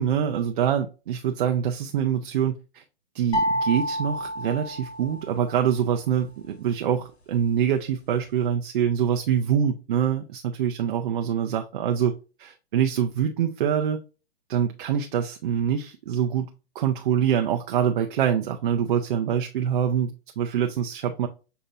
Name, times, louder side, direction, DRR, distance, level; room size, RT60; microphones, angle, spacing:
voice 1, 0.0-2.8 3.1-12.1 12.4-14.0 14.5-21.3, right 9 dB, 55° right, 0.6 m, -25 dB
sound 1, 3.3-5.5, equal, 90° left, 1.4 m, -28 dB
6.7 x 2.8 x 2.5 m
hypercardioid pair, 140°, 32 cm